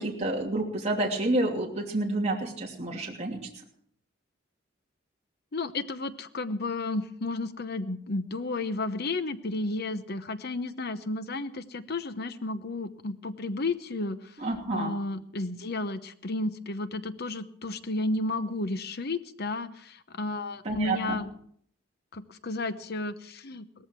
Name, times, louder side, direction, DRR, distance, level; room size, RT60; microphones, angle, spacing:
voice 1, 0.0-3.4 14.4-14.9 20.6-21.2, right 2 dB, 35° right, -1 dB, 2.9 m, -29 dB
voice 2, 5.5-14.4 14.7-21.3 22.1-23.9, left 2 dB, 55° left, 11 dB, 1.0 m, -32 dB
18.5 x 14.0 x 4.6 m, 0.63 s
head